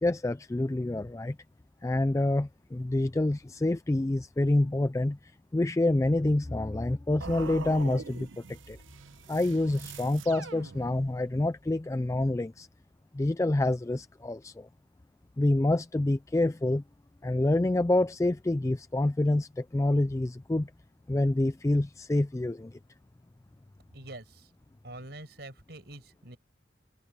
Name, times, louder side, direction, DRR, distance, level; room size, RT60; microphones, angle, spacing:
voice 1, 0.0-1.4 1.8-8.8 9.3-12.7 13.1-14.7 15.4-16.8 17.2-20.7 21.1-22.8, left 2 dB, 15° left, 0.3 m, -27 dB
sound 1, 7.2-11.3, right 4 dB, 90° right, 0.8 m, -43 dB
voice 2, 23.9-24.5 24.8-26.4, right 1 dB, 60° right, 5.9 m, -45 dB
head